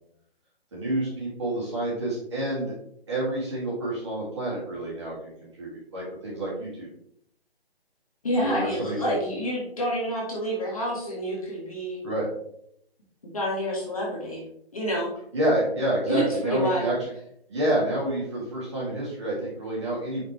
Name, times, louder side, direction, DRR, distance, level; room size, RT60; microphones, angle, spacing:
voice 1, 0.7-2.7 3.1-6.9 8.4-9.1 12.0-12.3 15.3-16.9 17.5-20.3, right 1 dB, 25° right, -6 dB, 2.7 m, -28 dB
voice 2, 8.2-12.0 13.3-14.4 14.7-15.1 16.1-16.9, equal, 35° left, -3 dB, 1.8 m, -28 dB
7.9 x 5.1 x 3.2 m, 0.71 s
hypercardioid pair, 180°, 31 cm